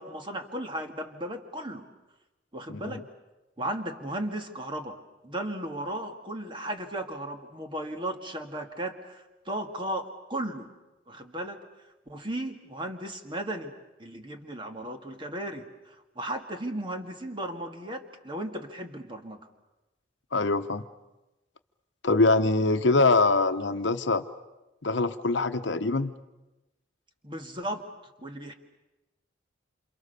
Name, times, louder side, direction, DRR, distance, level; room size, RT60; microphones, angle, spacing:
voice 1, 0.0-1.9 2.5-3.1 3.6-5.0 5.2-10.7 11.1-11.6 12.1-13.7 14.0-19.4 27.2-27.9 28.2-28.5, right 1 dB, 25° right, 5 dB, 2.0 m, -35 dB
voice 2, 2.7-3.0 20.3-20.8 22.0-24.2 24.8-26.1, left 3 dB, 70° left, 9 dB, 1.0 m, -24 dB
28.0 x 28.0 x 6.8 m, 1.0 s
head